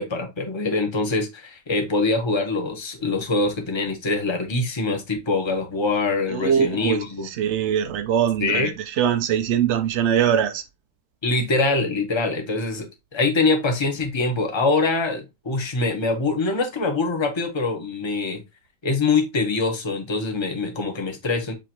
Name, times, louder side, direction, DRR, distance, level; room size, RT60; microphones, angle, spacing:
voice 1, 0.0-7.3 8.4-8.7 11.2-18.4 18.8-21.5, left 3 dB, 25° left, 0.6 m, -24 dB
voice 2, 6.3-7.0 7.4-8.7 9.0-10.6, right 9 dB, 85° right, 0.6 m, -21 dB
7.3 x 2.6 x 2.8 m
omnidirectional pair, 1.8 m